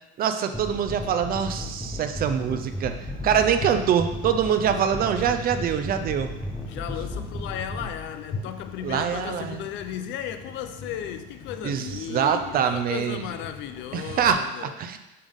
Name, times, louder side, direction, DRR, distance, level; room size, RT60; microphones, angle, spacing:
voice 1, 0.2-6.3 8.8-9.6 11.6-13.2 13.9-15.0, right 8 dB, 45° right, 9 dB, 0.6 m, -24 dB
sound 1, 0.5-7.9, left 1 dB, ahead, 0.7 m, -35 dB
sound 2, 1.6-14.3, left 4 dB, 45° left, 0.9 m, -42 dB
voice 2, 6.7-14.7, left 10 dB, 65° left, 9 dB, 0.6 m, -35 dB
6.7 x 5.4 x 3.6 m, 1.0 s
cardioid pair, 125°, 21 cm